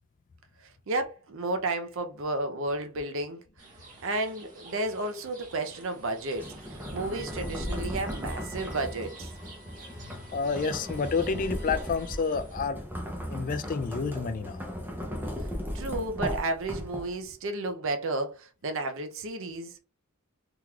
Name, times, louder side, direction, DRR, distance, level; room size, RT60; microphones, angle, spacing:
voice 1, 0.9-3.4 4.0-6.5 6.9-9.3 15.7-19.8, right 2 dB, 65° right, 0.6 m, -32 dB
sound 1, 3.6-12.6, right 3 dB, 40° right, 1.1 m, -51 dB
sound 2, 6.3-17.3, equal, 10° right, 0.6 m, -36 dB
sound 3, 7.1-12.2, left 4 dB, 55° left, 0.8 m, -53 dB
voice 2, 10.3-12.8 13.3-14.7, left 5 dB, 40° left, 0.3 m, -29 dB
3.7 x 3.0 x 2.3 m
head